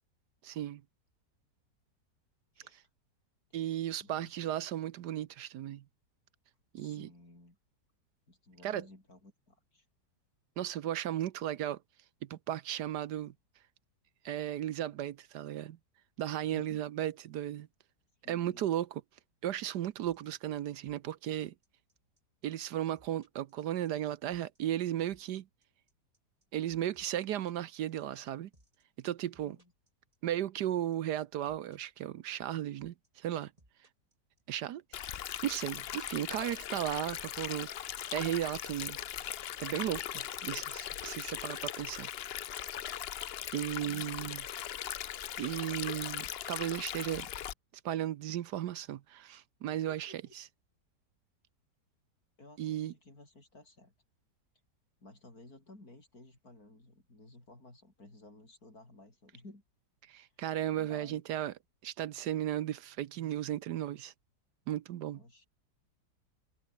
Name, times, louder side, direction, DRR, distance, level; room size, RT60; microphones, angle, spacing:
voice 1, 0.4-0.8 2.7-2.8 3.5-5.8 6.7-7.1 8.6-8.8 10.6-11.8 12.2-13.3 14.2-15.8 16.2-17.7 18.3-19.0 19.4-21.5 22.4-25.5 26.5-28.5 29.0-29.6 30.2-33.5 34.5-35.0 35.4-39.0 39.6-42.1 43.5-44.4 45.4-47.3 47.8-50.4 52.6-52.9 60.1-61.5 61.8-64.1 64.7-65.2, right 12 dB, 75° right, 1.3 m, -35 dB
voice 2, 4.0-4.3 6.8-7.6 8.3-9.9 16.4-16.8 18.2-18.8 29.4-29.7 43.8-44.4 49.9-50.3 52.4-53.9 55.0-59.6 60.7-61.2 65.1-65.5, left 2 dB, 55° left, 7.6 m, -55 dB
sound 1, 20.0-36.8, right 1 dB, 20° right, 4.9 m, -66 dB
Stream, 34.9-47.5, left 10 dB, 70° left, 0.5 m, -39 dB
omnidirectional pair, 1.8 m